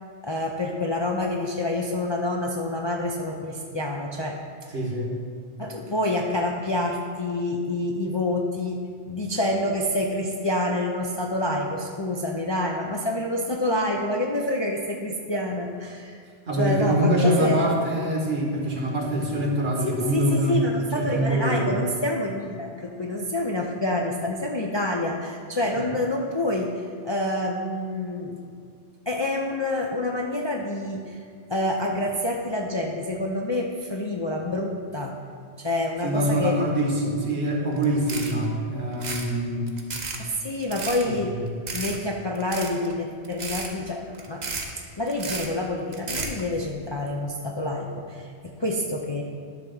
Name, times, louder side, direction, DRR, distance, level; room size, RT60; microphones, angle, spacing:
voice 1, 0.2-4.4 5.6-8.8 9.1-16.2 16.5-17.7 19.8-26.7 27.0-28.4 29.1-31.2 31.5-35.2 35.6-36.6 40.2-41.4 41.7-44.5 45.0-49.2, left 1 dB, 35° left, 0 dB, 0.4 m, -27 dB
voice 2, 4.7-5.1 16.5-20.6 20.9-21.7 36.0-39.7 41.0-41.3, right 1 dB, 65° right, -1 dB, 1.6 m, -24 dB
sound 1, 37.8-37.9 38.1-38.4 38.9-39.3 39.7-40.2 40.6-41.0 41.7-42.0 42.3-42.9 43.2-43.7 44.1-44.7 45.1-45.5 45.9-46.4, right 4 dB, 45° right, 0.8 m, -32 dB
10.5 x 3.5 x 6.4 m, 2.2 s
omnidirectional pair, 1.1 m